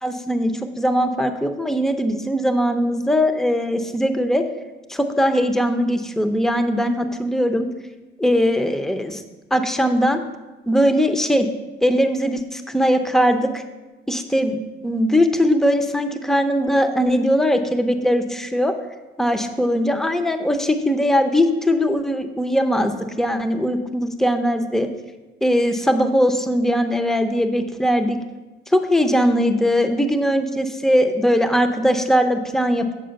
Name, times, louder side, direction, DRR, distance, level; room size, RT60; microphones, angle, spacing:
voice 1, 0.0-4.4 4.9-7.7 8.2-9.2 9.5-10.2 10.7-11.5 11.8-13.6 14.1-14.6 14.8-18.7 19.2-24.9 25.4-28.2 28.7-32.9, equal, ahead, 7 dB, 0.7 m, -20 dB
7.9 x 4.9 x 6.5 m, 1.2 s
cardioid pair, 90°, 20 cm